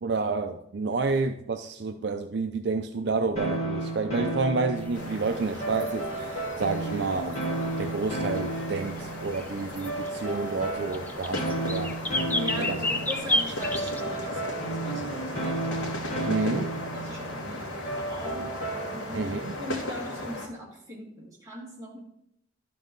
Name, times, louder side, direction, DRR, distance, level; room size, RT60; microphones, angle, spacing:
voice 1, 0.0-7.4 7.8-11.9 12.6-12.8 16.3-16.7 19.1-19.6, right 3 dB, 55° right, 6 dB, 0.4 m, -29 dB
sound 1, 3.4-19.3, right 2 dB, 35° left, 1.9 m, -33 dB
sound 2, 4.8-14.0, left 1 dB, 10° left, 0.4 m, -32 dB
sound 3, 4.9-20.5, left 1 dB, 80° left, 1.5 m, -37 dB
voice 2, 12.3-15.7 16.9-18.5 18.9-19.3 19.6-22.0, left 1 dB, 15° right, -4 dB, 2.1 m, -40 dB
12.0 x 5.5 x 3.9 m, 0.77 s
head